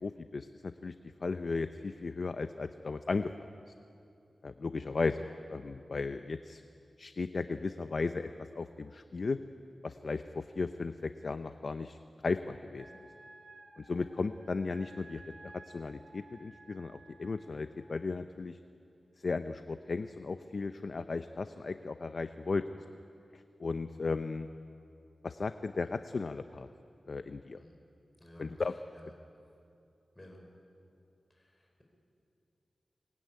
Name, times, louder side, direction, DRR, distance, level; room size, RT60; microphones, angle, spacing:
voice 1, 0.0-0.9 1.2-3.3 4.4-6.6 7.0-9.4 9.8-12.0 12.2-12.8 13.8-15.2 15.7-18.6 19.2-22.6 23.3-24.5 25.2-26.7 27.1-27.6 28.4-28.7, left 4 dB, 55° left, 9 dB, 0.7 m, -35 dB
Wind instrument woodwind instrument, 12.7-17.6, right 3 dB, 45° right, 3.1 m, -55 dB
voice 2, 28.2-29.1 30.1-30.4 31.3-31.8, equal, 20° left, 1 dB, 5.0 m, -55 dB
25.5 x 20.5 x 9.6 m, 2.6 s
wide cardioid pair, 100°, 0 cm